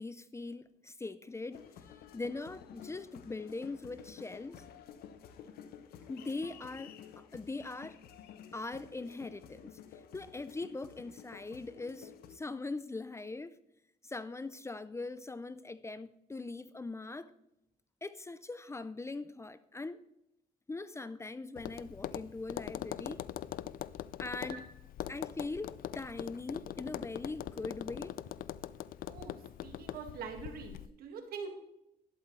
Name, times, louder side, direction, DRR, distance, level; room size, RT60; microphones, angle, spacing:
voice 1, 0.0-1.7 2.1-4.7 6.1-8.0 8.5-9.8 10.1-13.6 14.0-17.3 18.0-20.1 20.7-23.2 24.2-24.6 25.1-28.2, left 3 dB, 20° left, 0.5 m, -41 dB
sound 1, 1.5-12.4, left 8 dB, 85° left, 0.9 m, -52 dB
Tap, 21.6-30.9, left 12 dB, 70° left, 0.4 m, -42 dB
voice 2, 29.1-31.5, right 6 dB, 80° right, 1.9 m, -44 dB
12.0 x 11.0 x 3.2 m
cardioid pair, 85°, 15 cm